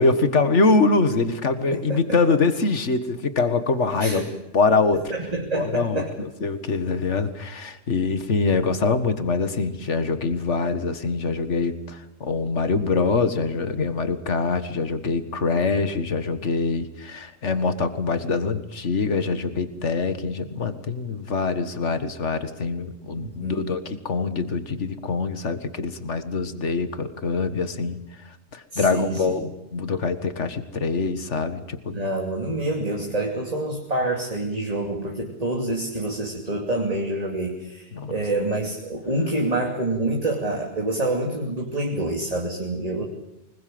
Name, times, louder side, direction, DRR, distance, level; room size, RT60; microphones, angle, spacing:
voice 1, 0.0-4.2 4.5-5.1 5.5-28.0 28.3-32.0 37.9-38.1, left 4 dB, 70° left, 10 dB, 2.0 m, -24 dB
voice 2, 1.7-2.2 4.0-4.3 5.1-6.1 23.1-23.6 28.7-29.4 31.9-43.0, right 2 dB, 30° right, 0 dB, 2.8 m, -27 dB
24.5 x 21.5 x 7.8 m, 0.93 s
omnidirectional pair, 1.3 m